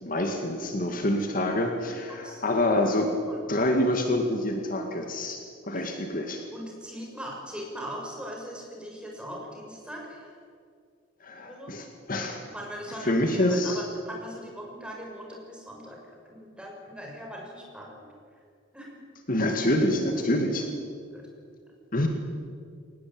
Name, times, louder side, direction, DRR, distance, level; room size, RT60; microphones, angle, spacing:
voice 1, 0.0-3.1 3.5-5.4 5.7-6.4 11.2-12.4 13.0-13.8 19.3-20.7 21.9-22.1, left 1 dB, 45° left, 3 dB, 2.2 m, -26 dB
voice 2, 2.1-3.0 3.3-3.4 5.7-5.9 6.5-10.3 11.4-11.7 12.3-16.0 16.2-18.0 18.7-19.0 20.3-20.4 21.1-21.2, equal, 5° right, -1 dB, 6.3 m, -40 dB
23.0 x 19.5 x 9.0 m, 2.2 s
head